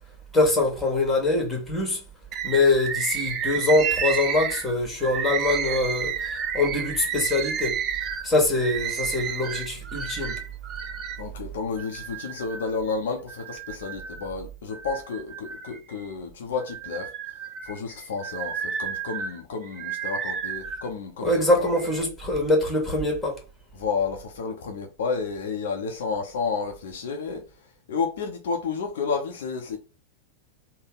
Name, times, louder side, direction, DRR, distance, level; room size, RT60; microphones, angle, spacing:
voice 1, 0.3-2.0 2.4-7.8 8.2-10.4 21.2-23.4, left 2 dB, 5° left, 1.5 m, -23 dB
Bird, 2.3-11.2 11.8-12.8 13.3-14.3 14.7-16.1 16.6-20.9 21.6-22.0, right 7 dB, 30° right, 0.5 m, -31 dB
voice 2, 11.2-17.1 17.6-21.9 23.7-27.4 27.9-29.8, left 5 dB, 60° left, 0.7 m, -31 dB
3.4 x 2.0 x 3.9 m
figure-of-eight pair, 90°, 0 cm